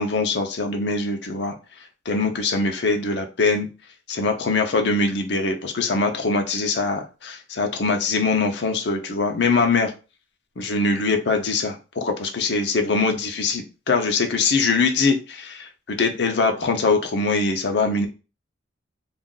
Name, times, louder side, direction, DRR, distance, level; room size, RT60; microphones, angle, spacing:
voice 1, 0.0-1.6 2.1-3.7 4.1-9.9 10.6-18.1, left 3 dB, 65° left, 4 dB, 0.6 m, -22 dB
2.5 x 2.3 x 3.6 m, 0.31 s
head